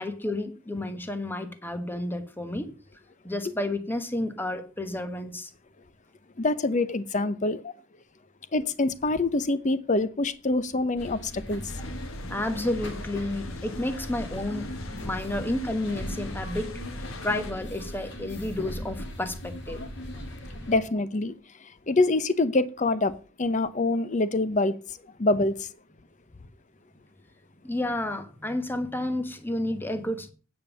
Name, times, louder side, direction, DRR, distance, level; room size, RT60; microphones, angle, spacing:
voice 1, 0.0-2.7 3.2-5.5 12.3-14.7 15.0-16.7 17.0-19.8 27.6-30.3, left 1 dB, 10° left, 1.1 m, -31 dB
voice 2, 6.4-7.7 8.5-11.7 20.7-21.4 21.6-24.7 25.2-25.7, left 2 dB, 35° left, 0.7 m, -25 dB
sound 1, 11.0-20.8, equal, 60° left, 2.1 m, -38 dB
sound 2, 11.7-17.5, left 3 dB, 85° left, 1.1 m, -42 dB
9.1 x 5.3 x 7.0 m
head